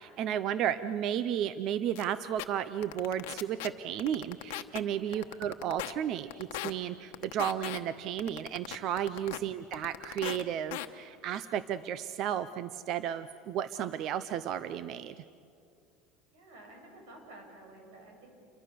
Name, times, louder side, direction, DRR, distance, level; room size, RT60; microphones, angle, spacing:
voice 1, 0.0-15.1, right 10 dB, 40° right, 14 dB, 0.6 m, -33 dB
sound 1, 2.0-2.1 2.4-2.5 2.8-3.7 4.0-4.8 5.1-5.9 6.3-6.7 7.1-7.8 8.2-9.4 9.7-10.4 10.7-10.9, left 17 dB, 80° left, 1.1 m, -37 dB
voice 2, 16.3-18.3, right 2 dB, 90° right, 2 dB, 7.7 m, -52 dB
29.0 x 24.5 x 6.8 m, 2.5 s
cardioid pair, 175°, 0 cm